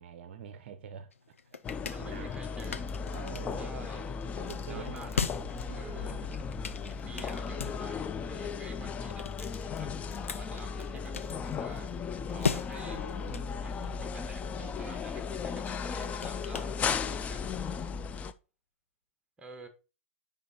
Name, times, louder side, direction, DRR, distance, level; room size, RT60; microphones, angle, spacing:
voice 1, 0.0-1.6 2.0-2.3 3.1-5.0 5.7-5.8 9.9-10.1, right 8 dB, 55° right, 0.6 m, -46 dB
sound 1, 1.1-17.4, left 5 dB, 75° left, 0.7 m, -41 dB
sound 2, 1.6-18.3, left 6 dB, 20° left, 0.5 m, -36 dB
voice 2, 1.9-2.9 3.6-4.1 4.7-5.2 5.7-9.9 10.2-13.0 13.3-17.5 19.4-19.7, right 3 dB, 15° right, 1.5 m, -50 dB
5.2 x 5.1 x 4.4 m
figure-of-eight pair, 100°, 7 cm